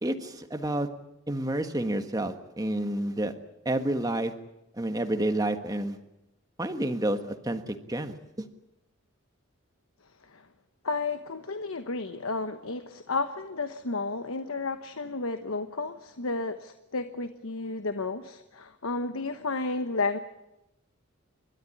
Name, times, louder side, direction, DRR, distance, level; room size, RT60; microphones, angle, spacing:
voice 1, 0.0-0.9 1.3-3.3 3.6-4.3 4.7-6.0 6.6-8.4, right 1 dB, 15° right, 7 dB, 1.5 m, -29 dB
voice 2, 10.8-20.2, left 3 dB, 75° left, 9 dB, 1.1 m, -32 dB
30.0 x 13.5 x 9.8 m, 0.91 s
head